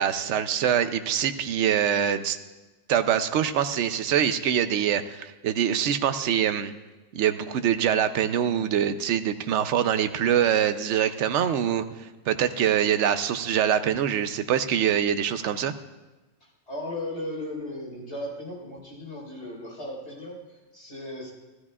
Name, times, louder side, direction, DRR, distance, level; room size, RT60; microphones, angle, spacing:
voice 1, 0.0-2.4 2.9-6.7 7.1-15.7, right 9 dB, 70° right, 10 dB, 0.9 m, -24 dB
voice 2, 16.7-21.3, left 1 dB, 55° left, -5 dB, 4.9 m, -36 dB
16.0 x 13.5 x 2.4 m, 1.1 s
omnidirectional pair, 1.3 m